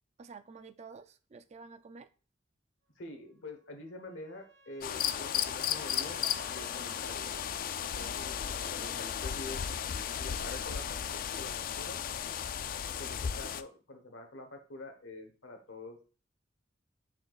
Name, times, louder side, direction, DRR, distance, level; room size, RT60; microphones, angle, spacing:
voice 1, 0.2-2.1 8.0-8.3, right 4 dB, 35° right, 11 dB, 0.4 m, -50 dB
voice 2, 3.0-6.2 6.5-7.3 7.8-9.6 10.2-11.0 11.4-12.0 13.0-16.0, left 2 dB, 90° left, 5 dB, 1.1 m, -46 dB
Trumpet, 3.4-7.3, right 4 dB, 90° right, 1.3 m, -58 dB
sound 1, 4.8-13.6, left 9 dB, 50° left, 0.3 m, -35 dB
9.2 x 4.4 x 2.4 m, 0.37 s
head